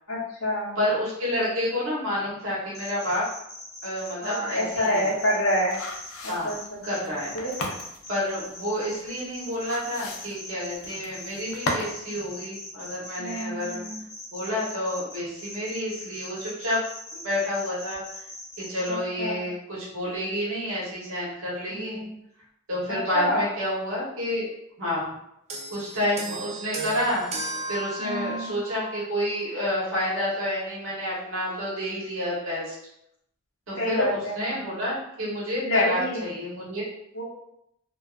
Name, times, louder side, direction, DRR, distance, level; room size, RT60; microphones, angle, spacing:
voice 1, 0.1-0.7 4.2-5.8 6.2-7.6 13.2-14.0 18.9-19.4 21.7-22.1 23.1-23.5 28.0-28.5 33.8-34.7 35.6-36.2 37.1-37.2, equal, 70° left, -5 dB, 0.8 m, -28 dB
voice 2, 0.8-3.2 3.8-5.1 6.3-6.5 6.8-7.4 8.1-13.8 14.3-16.8 17.1-18.0 18.6-22.0 22.7-24.5 24.8-25.1 25.7-27.2 27.7-32.8 33.7-36.8, left 1 dB, 75° right, -6 dB, 1.0 m, -29 dB
sound 1, 2.7-6.1 6.5-18.9, left 2 dB, 30° left, 1.0 m, -41 dB
sound 2, 4.6-12.0 12.3-12.4, left 2 dB, 85° left, 0.4 m, -36 dB
sound 3, 25.5-29.1 30.0-30.1, right 2 dB, 30° right, 0.3 m, -35 dB
2.5 x 2.3 x 2.3 m, 0.79 s
head